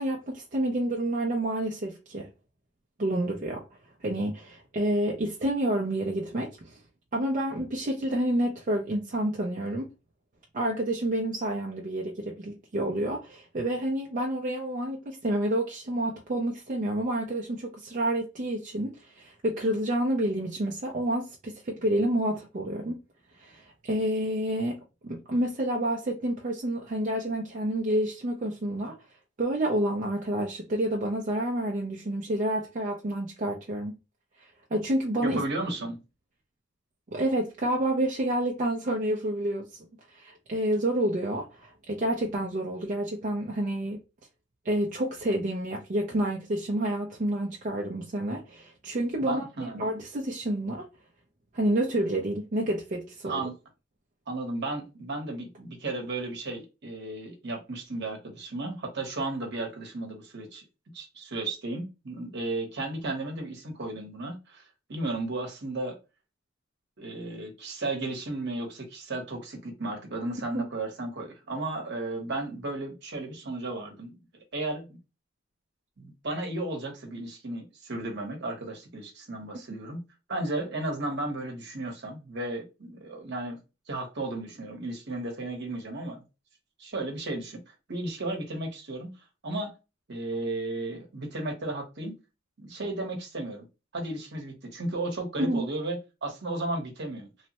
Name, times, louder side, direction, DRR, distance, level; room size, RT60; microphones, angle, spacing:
voice 1, 0.0-2.3 3.0-3.6 4.0-6.8 7.1-9.9 10.5-23.0 23.4-29.0 29.4-34.0 34.7-35.4 37.1-44.0 44.6-50.9 51.5-53.4 70.5-70.6 95.4-95.7, right 1 dB, 40° right, 0.5 m, -29 dB
voice 2, 35.2-36.0 49.2-49.8 53.2-53.6 54.3-60.6 60.9-64.6 64.9-65.9 67.0-74.2 74.5-75.0 76.0-80.0 80.3-83.6 83.9-86.2 86.8-87.6 87.9-89.1 89.4-89.7 90.1-92.2 92.6-93.6 93.9-97.3, right 2 dB, 60° right, 1.0 m, -34 dB
3.1 x 2.1 x 2.8 m
head